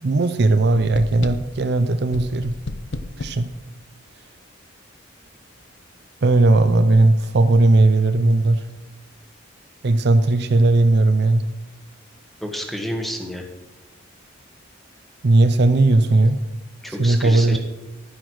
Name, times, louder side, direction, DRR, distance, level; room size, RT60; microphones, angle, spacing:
voice 1, 0.0-2.5 3.2-3.5 6.2-8.6 9.8-11.4 15.2-16.4 17.0-17.6, right 2 dB, 50° right, 10 dB, 0.5 m, -17 dB
sound 1, 0.9-1.6 2.1-3.5, left 2 dB, 55° left, 0.7 m, -31 dB
voice 2, 12.4-13.5 16.8-17.6, equal, ahead, 3 dB, 1.3 m, -30 dB
11.0 x 10.0 x 4.6 m, 0.99 s
head